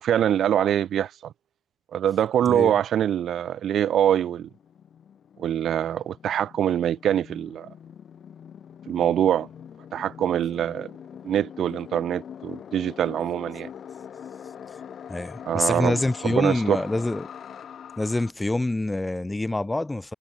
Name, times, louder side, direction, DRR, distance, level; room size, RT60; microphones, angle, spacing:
voice 1, 0.0-1.3 1.9-4.5 5.4-7.7 8.9-9.5 9.9-10.9 11.2-13.7 15.4-16.8, right 10 dB, 55° right, 1.3 m, -24 dB
sound 1, 3.3-18.3, left 8 dB, 50° left, 3.8 m, -43 dB
voice 2, 15.1-17.3 18.0-20.1, left 2 dB, 15° left, 1.2 m, -26 dB
hypercardioid pair, 60°, 0 cm